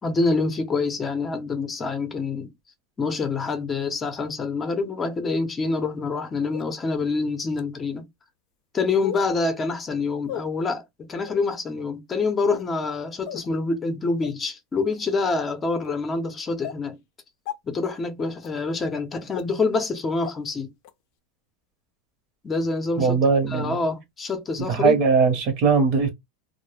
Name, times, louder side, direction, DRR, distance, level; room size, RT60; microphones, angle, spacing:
voice 1, 0.0-2.5 3.0-8.0 8.7-10.8 11.1-17.0 17.6-20.7 22.4-23.2 23.5-25.0, left 3 dB, 20° left, 0.6 m, -26 dB
sound 1, 6.5-6.6 7.5-7.6 9.0-9.3 10.2-10.4 11.2-11.4 12.4-12.7 13.3-13.5 14.2-14.3 14.9-15.1 15.8-15.9 16.6-16.8 17.5-17.6 18.4-18.5 19.3-19.4 20.2-20.3 20.8-20.9, left 11 dB, 60° left, 0.4 m, -35 dB
voice 2, 23.0-23.8 24.7-26.1, right 5 dB, 55° right, 0.8 m, -20 dB
2.1 x 2.0 x 3.1 m
supercardioid pair, 135°, 0 cm